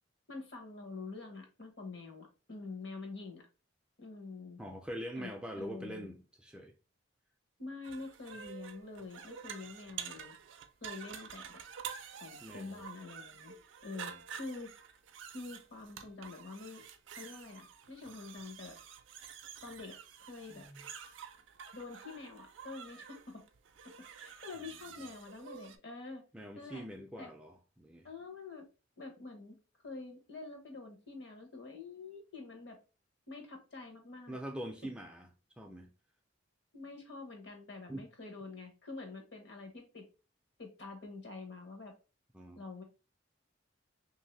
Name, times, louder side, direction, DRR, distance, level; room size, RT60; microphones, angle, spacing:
voice 1, 0.3-3.5 4.0-4.6 5.2-6.1 7.6-10.3 10.8-11.6 12.2-13.5 13.8-14.7 15.3-16.8 17.1-18.8 19.6-20.6 21.7-23.4 24.2-26.2 26.5-26.8 27.2-27.3 28.0-28.7 29.0-29.6 29.8-32.8 33.3-34.4 36.7-40.0 40.6-41.9 42.6-42.8, left 3 dB, 60° left, 1.0 m, -46 dB
voice 2, 4.6-6.7 12.4-12.8 14.1-14.2 20.5-20.9 26.3-28.1 34.3-35.3 35.6-35.9 37.9-38.0 42.3-42.6, equal, 5° right, 0.3 m, -44 dB
sound 1, 7.8-25.8, right 8 dB, 70° right, 0.4 m, -49 dB
2.9 x 2.7 x 3.2 m
head